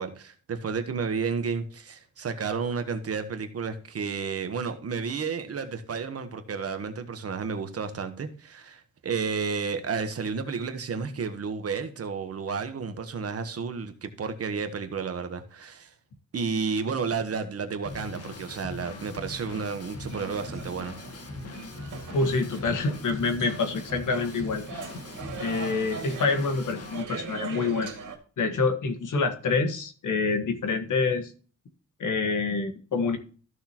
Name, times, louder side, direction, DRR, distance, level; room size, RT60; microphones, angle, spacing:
voice 1, 0.0-15.9 16.3-21.0, right 5 dB, 50° right, 1.2 m, -31 dB
Drum kit / Drum, 17.8-27.0, left 3 dB, 50° left, 1.5 m, -41 dB
sound 1, 19.3-28.2, right 5 dB, 85° right, 2.3 m, -41 dB
voice 2, 22.1-24.6 25.4-27.9 28.4-31.3 32.0-33.2, left 4 dB, 80° left, 1.6 m, -27 dB
14.0 x 6.4 x 3.0 m
wide cardioid pair, 175°, 31 cm